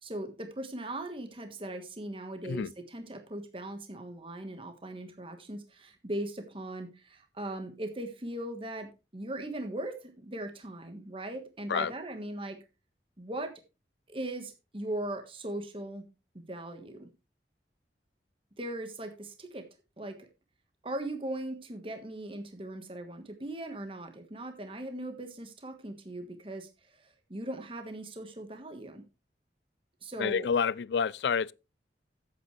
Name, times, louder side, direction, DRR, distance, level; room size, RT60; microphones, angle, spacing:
voice 1, 0.0-12.6 13.2-13.5 14.1-16.1 16.3-17.1 18.6-19.6 20.0-20.3 20.8-29.0 30.0-30.5, right 1 dB, 30° right, 1.4 m, -39 dB
voice 2, 30.2-31.5, left 6 dB, 70° left, 0.4 m, -28 dB
11.5 x 8.6 x 3.2 m
head